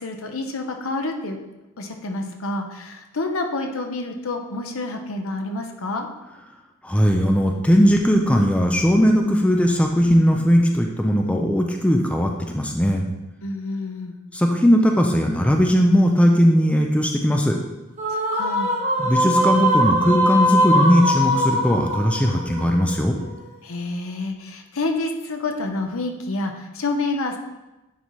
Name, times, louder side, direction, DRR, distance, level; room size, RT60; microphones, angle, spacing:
voice 1, 0.0-1.4 1.8-6.1 13.4-14.1 18.1-18.7 23.6-27.4, left 2 dB, 70° left, 4 dB, 0.8 m, -28 dB
voice 2, 6.8-13.1 14.3-17.6 19.0-23.2, equal, 5° left, 2 dB, 0.4 m, -18 dB
sound 1, 18.0-23.4, equal, 35° right, 1.1 m, -21 dB
9.4 x 4.1 x 3.1 m, 1.0 s
head